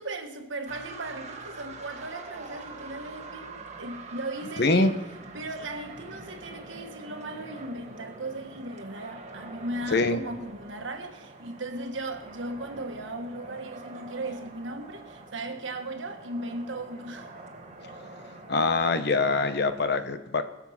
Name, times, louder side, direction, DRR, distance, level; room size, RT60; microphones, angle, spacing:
voice 1, 0.0-5.0 5.3-17.3, right 2 dB, 70° right, 1.3 m, -37 dB
sound 1, 0.7-19.8, right 2 dB, 35° right, 1.4 m, -45 dB
voice 2, 4.6-4.9 9.9-10.2 18.5-20.4, left 3 dB, 60° left, 0.9 m, -24 dB
21.5 x 7.2 x 5.7 m
head